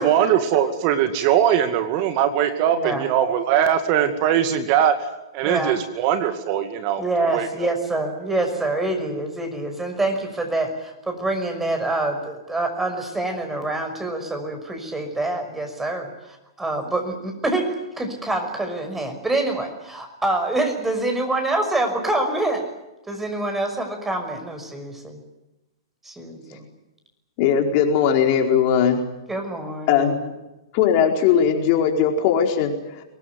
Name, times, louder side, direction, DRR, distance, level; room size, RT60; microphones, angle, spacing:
voice 1, 0.0-4.9 5.3-7.0 7.3-7.7, right 9 dB, 45° right, 9 dB, 2.2 m, -21 dB
voice 2, 2.7-3.1 5.4-5.7 7.0-22.7 23.1-25.2 26.0-26.7 29.3-30.3, right 2 dB, 10° right, 5 dB, 6.0 m, -26 dB
voice 3, 27.4-29.0 29.9-30.2 30.7-33.0, left 8 dB, 45° left, 3 dB, 4.6 m, -19 dB
24.0 x 19.5 x 9.6 m, 0.98 s
hypercardioid pair, 115°, 2 cm